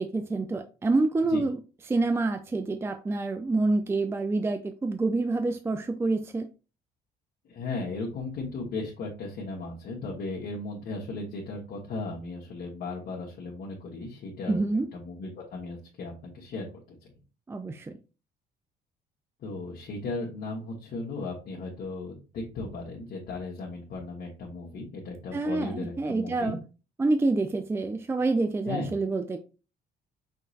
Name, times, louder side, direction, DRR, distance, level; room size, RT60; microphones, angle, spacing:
voice 1, 0.0-1.6 1.9-6.5 14.5-14.9 17.5-18.0 25.3-26.6 27.0-29.4, right 3 dB, 15° right, 7 dB, 0.4 m, -27 dB
voice 2, 7.5-14.6 14.9-16.7 19.4-26.6 28.7-28.9, left 3 dB, 60° left, -3 dB, 1.2 m, -36 dB
5.7 x 3.0 x 2.8 m, 0.33 s
cardioid pair, 110°, 17 cm